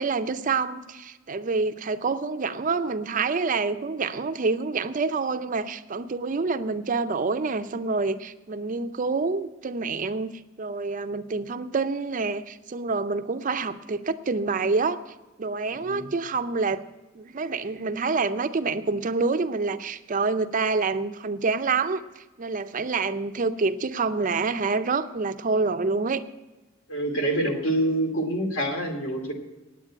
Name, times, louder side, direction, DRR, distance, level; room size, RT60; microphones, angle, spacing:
voice 1, 0.0-10.3 10.6-15.0 15.4-16.8 17.2-26.2, right 4 dB, 40° right, 10 dB, 0.5 m, -27 dB
voice 2, 15.7-16.1 26.9-29.3, right 1 dB, 65° left, 3 dB, 2.5 m, -26 dB
9.4 x 8.9 x 8.9 m, 1.1 s
head